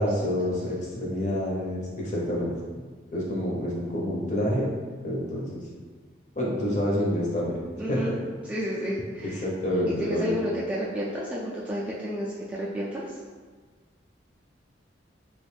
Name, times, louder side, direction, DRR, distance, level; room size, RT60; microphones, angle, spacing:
voice 1, 0.0-2.5 3.1-4.7 5.0-5.6 6.4-7.6 7.9-8.1 9.2-10.3, left 1 dB, 40° left, -4 dB, 0.7 m, -27 dB
voice 2, 7.8-8.1 8.4-9.4 10.0-13.2, equal, 5° right, -7 dB, 0.3 m, -31 dB
3.0 x 2.5 x 3.2 m, 1.5 s
head